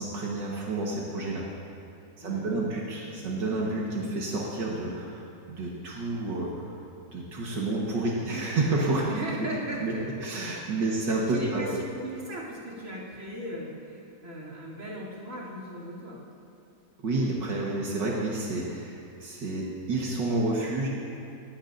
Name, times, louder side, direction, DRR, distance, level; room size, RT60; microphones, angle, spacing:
voice 1, 0.0-1.5 2.2-6.8 7.1-9.0 9.8-9.9 10.2-11.8 17.0-20.9, right 2 dB, 80° right, -4 dB, 2.1 m, -30 dB
voice 2, 2.2-2.8 9.0-10.3 10.9-16.2, right 1 dB, 45° right, -5 dB, 3.4 m, -38 dB
20.0 x 16.0 x 2.6 m, 2.6 s
omnidirectional pair, 1.9 m